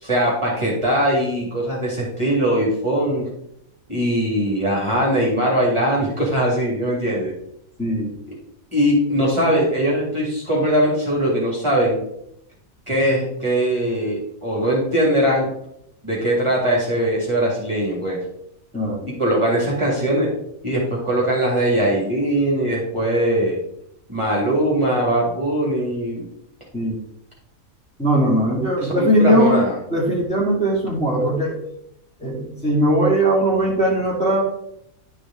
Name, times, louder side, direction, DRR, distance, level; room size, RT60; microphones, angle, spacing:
voice 1, 0.0-3.2 3.9-7.3 8.3-8.4 8.7-12.0 12.9-15.5 16.0-18.2 19.0-20.3 20.6-23.6 24.1-26.3 28.8-29.7, right 1 dB, 20° right, -5 dB, 2.1 m, -21 dB
voice 2, 7.8-8.1 18.7-19.1 26.7-26.9 28.0-29.6 29.9-31.5 32.2-34.4, right 1 dB, 5° left, -5 dB, 2.3 m, -19 dB
11.0 x 4.9 x 3.7 m, 0.76 s
omnidirectional pair, 1.4 m